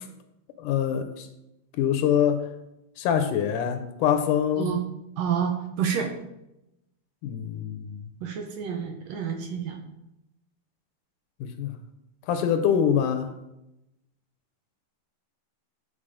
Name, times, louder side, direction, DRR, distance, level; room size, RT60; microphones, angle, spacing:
voice 1, 0.6-1.3 1.8-2.5 3.0-4.7 7.2-8.0 11.4-11.7 12.3-13.3, left 8 dB, 80° left, 2.2 m, -24 dB
voice 2, 5.2-6.1 8.2-9.8, right 7 dB, 75° right, 1.7 m, -28 dB
10.0 x 4.4 x 5.0 m
omnidirectional pair, 3.8 m